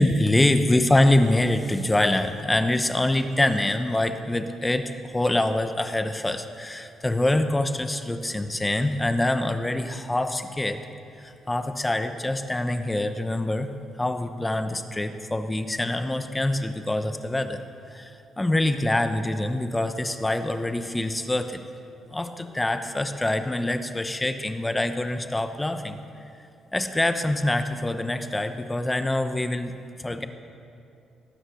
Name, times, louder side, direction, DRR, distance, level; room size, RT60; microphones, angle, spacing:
voice 1, 0.0-10.8 11.2-13.7 14.0-17.6 17.9-21.6 22.1-26.0 26.7-29.7 30.0-30.3, left 1 dB, 15° left, 8 dB, 0.9 m, -25 dB
19.5 x 9.9 x 6.4 m, 2.6 s
cardioid pair, 90°, 0 cm